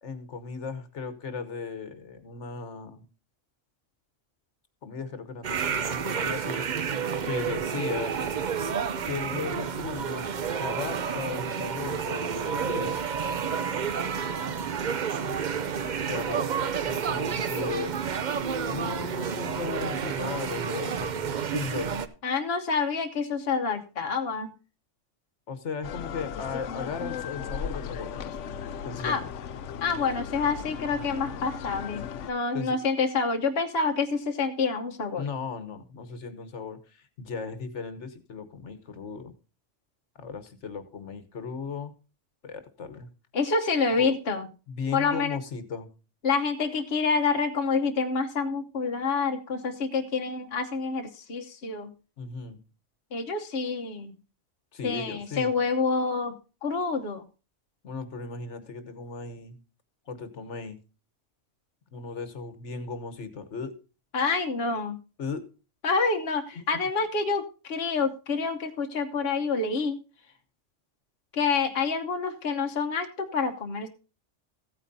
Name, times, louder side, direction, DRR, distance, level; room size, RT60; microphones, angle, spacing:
voice 1, 0.0-3.0 4.8-6.8 7.2-8.2 9.0-10.2 10.6-13.0 16.0-18.0 18.7-22.0 25.5-28.4 28.8-29.3 32.5-32.8 35.1-39.3 40.1-41.9 42.4-43.1 44.0-44.2 44.7-45.9 52.2-52.6 54.7-55.5 57.8-59.6 60.1-60.8 61.9-63.7 65.2-65.4, left 5 dB, 75° left, 11 dB, 1.4 m, -36 dB
sound 1, 5.4-22.1, right 7 dB, 45° right, 0.7 m, -30 dB
voice 2, 22.2-24.5 29.0-29.2 29.8-35.3 43.3-44.5 44.9-45.4 46.2-51.9 53.1-54.1 54.8-57.2 64.1-65.0 65.8-70.0 71.3-73.9, left 4 dB, 55° left, 4 dB, 1.2 m, -27 dB
sound 2, 25.8-32.3, left 7 dB, 90° left, 1.0 m, -36 dB
15.5 x 9.0 x 2.7 m, 0.33 s
omnidirectional pair, 1.2 m